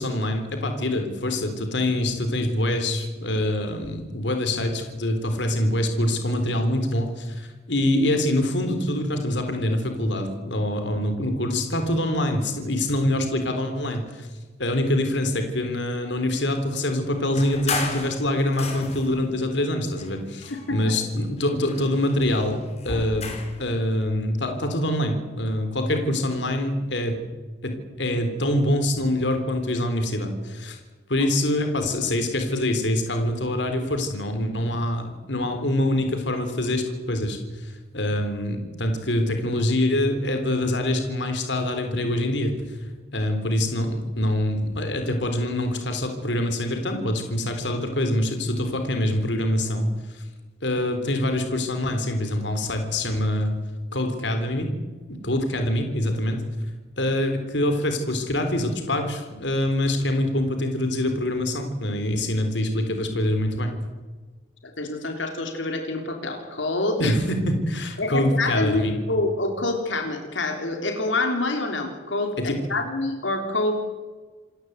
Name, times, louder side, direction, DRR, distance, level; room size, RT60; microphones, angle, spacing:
voice 1, 0.0-14.3 14.6-22.6 22.8-27.2 27.6-30.8 31.1-42.8 43.1-50.2 50.6-53.5 53.9-54.7 55.2-56.4 57.0-63.8 67.0-69.0 72.4-72.5, left 1 dB, 70° left, 6 dB, 3.8 m, -25 dB
sound 1, 17.3-19.2 19.9-21.1 21.4-23.6, left 3 dB, 35° left, 4.6 m, -33 dB
voice 2, 64.8-67.2 68.0-73.8, left 2 dB, 90° left, 3 dB, 3.7 m, -26 dB
28.0 x 16.0 x 8.2 m, 1.3 s
head